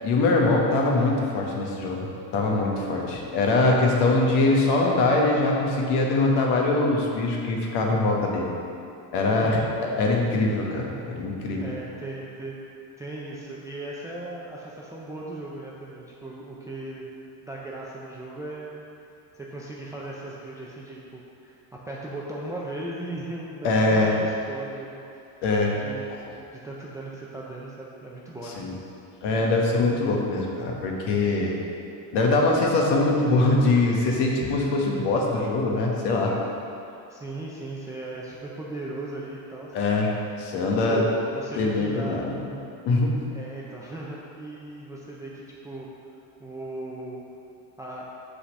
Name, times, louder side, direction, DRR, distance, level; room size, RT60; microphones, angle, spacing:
voice 1, 0.0-8.5 9.1-9.6 10.0-11.6 23.6-24.1 25.4-25.8 26.1-26.2 28.6-28.7 29.2-31.5 32.1-36.3 39.7-40.1 40.4-41.0 41.6-42.3 42.8-43.2, left 2 dB, 60° left, -1 dB, 1.3 m, -23 dB
voice 2, 9.3-10.1 11.6-12.6 13.0-17.1 17.4-18.8 19.3-21.6 21.9-25.4 25.8-26.2 26.5-28.8 37.1-39.7 40.6-42.4 43.3-45.9 46.4-47.2 47.8-48.1, right 2 dB, 10° right, -5 dB, 0.3 m, -37 dB
5.7 x 4.2 x 6.2 m, 2.6 s
cardioid pair, 135°, 46 cm